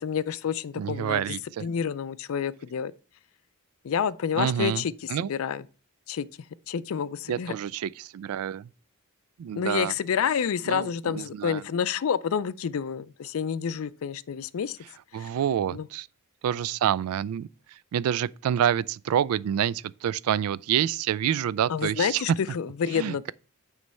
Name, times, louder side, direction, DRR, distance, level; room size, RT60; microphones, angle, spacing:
voice 1, 0.0-1.2 1.6-2.9 3.8-4.9 5.3-5.6 6.1-6.2 6.7-7.5 9.6-14.8 15.2-15.3 15.7-15.9 21.7-23.3, left 7 dB, 65° left, 0.4 m, -28 dB
voice 2, 0.8-1.7 4.4-5.3 7.3-8.7 9.4-9.9 10.7-11.6 15.1-16.1 16.4-22.4 22.9-23.2, right 9 dB, 75° right, 0.3 m, -28 dB
9.2 x 3.2 x 5.4 m
head